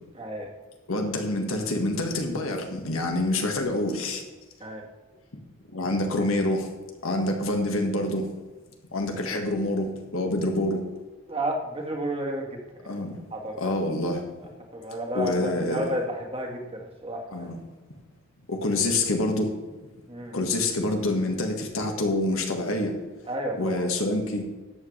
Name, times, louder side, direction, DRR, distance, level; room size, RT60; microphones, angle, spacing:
voice 1, 0.2-0.5 4.6-4.8 11.3-12.9 13.3-13.8 14.1-14.2 14.7-17.5 20.1-20.4 23.3-23.8, right 1 dB, 25° right, 0 dB, 1.8 m, -32 dB
voice 2, 0.9-4.2 5.7-6.7 7.0-8.3 8.9-10.9 12.8-13.2 13.6-14.2 15.1-15.9 17.3-17.5 18.5-19.5 20.3-22.9 23.6-24.5, left 2 dB, 80° left, 3 dB, 1.8 m, -26 dB
13.0 x 8.8 x 3.4 m, 1.2 s
head